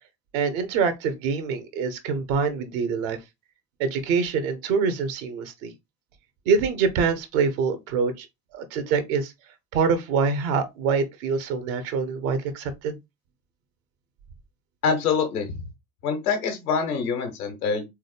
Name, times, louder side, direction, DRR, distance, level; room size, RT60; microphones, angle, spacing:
voice 1, 0.3-3.2 3.8-5.7 6.5-8.3 8.5-9.3 9.7-13.0, right 5 dB, 65° right, 0.9 m, -25 dB
voice 2, 14.8-15.5 16.0-17.8, left 5 dB, 80° left, 1.1 m, -25 dB
3.8 x 3.4 x 3.3 m
figure-of-eight pair, 45°, 44 cm